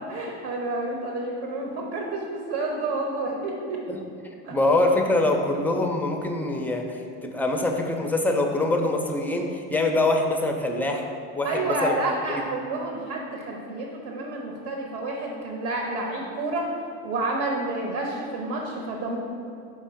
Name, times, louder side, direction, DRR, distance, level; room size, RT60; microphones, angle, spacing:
voice 1, 0.0-3.8 4.4-4.6 11.4-16.7 17.0-19.2, right 2 dB, 65° right, 0 dB, 1.0 m, -29 dB
voice 2, 4.5-11.0 11.4-12.0, left 2 dB, 5° left, 3 dB, 0.4 m, -24 dB
5.1 x 3.6 x 5.5 m, 2.6 s
cardioid pair, 130°, 32 cm